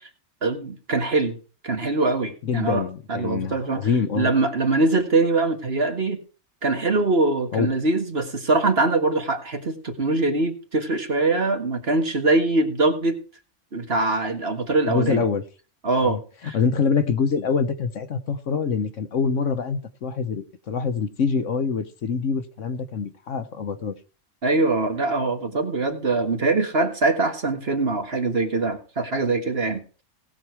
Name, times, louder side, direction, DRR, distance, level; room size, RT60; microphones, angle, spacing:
voice 1, 0.4-1.4 1.6-3.9 4.2-6.2 6.6-13.2 13.7-15.2 15.8-16.2 16.4-16.6 24.4-29.8, right 3 dB, 45° right, 1.9 m, -23 dB
voice 2, 2.4-4.3 7.5-7.7 14.8-15.5 16.0-23.9, left 5 dB, 60° left, 1.2 m, -25 dB
18.5 x 6.5 x 4.7 m
omnidirectional pair, 1.5 m